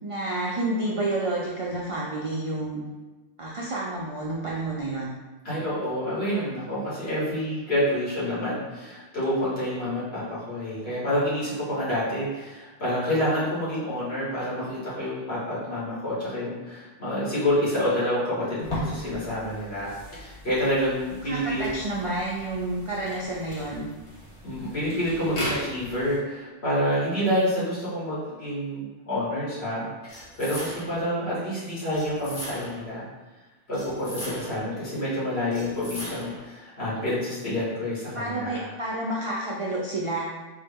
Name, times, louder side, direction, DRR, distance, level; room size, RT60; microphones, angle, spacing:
voice 1, 0.0-2.8 3.4-5.1 21.2-23.8 38.2-40.3, right 2 dB, 55° right, -5 dB, 0.3 m, -29 dB
voice 2, 5.4-21.6 24.4-33.0 33.7-38.6, equal, 70° left, -10 dB, 1.8 m, -28 dB
sound 1, 18.6-26.2, left 1 dB, 90° left, 1.5 m, -37 dB
sound 2, 30.1-31.1 31.9-32.9 33.7-34.7 35.5-36.5, equal, 35° left, 1.3 m, -39 dB
4.3 x 2.0 x 3.4 m, 1.2 s
omnidirectional pair, 1.1 m